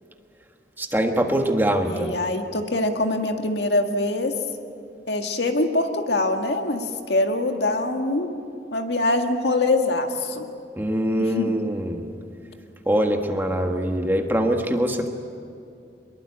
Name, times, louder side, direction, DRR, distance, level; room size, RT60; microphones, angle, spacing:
voice 1, 0.8-2.2 10.8-12.0 12.8-15.1, right 1 dB, 10° right, 3 dB, 1.6 m, -23 dB
voice 2, 1.9-4.3 5.1-8.3 8.7-10.5 11.2-11.6, left 2 dB, 70° left, 4 dB, 1.9 m, -24 dB
24.0 x 22.5 x 8.7 m, 2.5 s
head